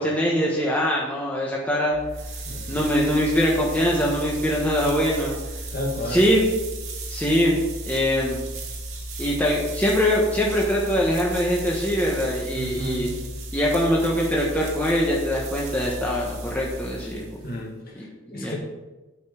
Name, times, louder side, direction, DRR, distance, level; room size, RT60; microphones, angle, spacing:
voice 1, 0.0-2.0 2.7-5.3 6.1-6.5 7.1-7.6 7.8-8.4 9.2-13.1 13.5-17.3 17.9-18.5, equal, 10° left, -4 dB, 1.1 m, -23 dB
sound 1, 1.9-17.7, right 1 dB, 85° right, 2.2 m, -35 dB
voice 2, 2.5-2.8 5.7-6.3 12.5-13.1 17.4-18.6, left 1 dB, 45° left, -1 dB, 2.1 m, -33 dB
8.4 x 5.3 x 6.9 m, 1.1 s
head